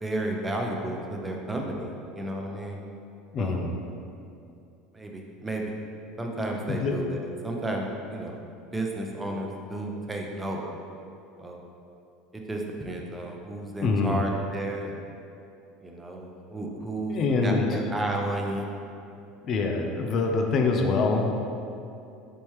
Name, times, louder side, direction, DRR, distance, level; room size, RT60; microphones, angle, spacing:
voice 1, 0.0-2.8 3.4-3.6 4.9-5.6 6.2-7.8 8.1-8.3 8.7-10.6 11.4-11.6 12.3-15.0 15.8-17.2 17.4-18.7, right 1 dB, 15° right, 0 dB, 0.6 m, -32 dB
voice 2, 3.3-3.7 6.7-7.0 13.8-14.2 17.1-17.8 19.4-21.3, left 4 dB, 45° left, 3 dB, 0.5 m, -25 dB
4.0 x 3.4 x 3.2 m, 2.6 s
hypercardioid pair, 85°, 0 cm